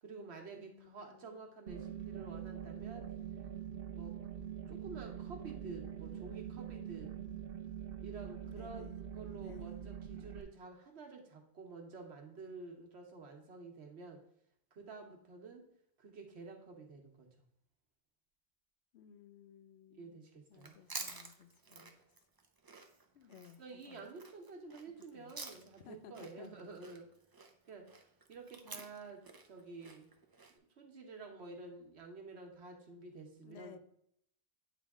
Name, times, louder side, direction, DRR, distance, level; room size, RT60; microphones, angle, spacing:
voice 1, 0.0-3.1 3.9-4.2 4.7-7.1 8.0-14.2 14.7-15.6 16.0-17.3 19.9-20.8 23.6-27.1 27.7-30.1 30.5-33.8, right 3 dB, 85° right, 3 dB, 1.3 m, -50 dB
voice 2, 0.6-1.5 1.9-2.6 8.4-9.0 9.3-9.8 18.9-20.2 20.5-21.9 23.1-24.1 25.1-25.3 25.8-26.5 33.4-33.8, left 8 dB, 80° left, 11 dB, 0.8 m, -57 dB
sound 1, 1.7-10.4, right 9 dB, 65° right, 0.8 m, -44 dB
Chewing mastication, 20.5-25.9 26.1-30.5, right 4 dB, 30° right, 0.4 m, -50 dB
8.9 x 3.4 x 3.6 m, 0.70 s
omnidirectional pair, 1.1 m